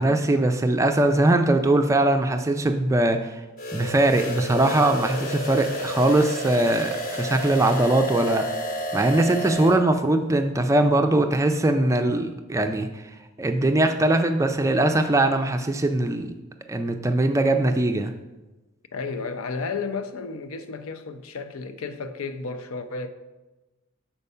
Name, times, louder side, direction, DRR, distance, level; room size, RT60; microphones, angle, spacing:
voice 1, 0.0-3.3 3.7-8.7 8.9-12.9 13.4-16.3 16.7-18.1, right 1 dB, 15° right, 0.4 m, -21 dB
sound 1, 3.6-9.8, equal, 40° left, 1.2 m, -31 dB
voice 2, 18.9-23.1, left 4 dB, 75° left, 0.6 m, -32 dB
6.9 x 4.4 x 5.4 m
head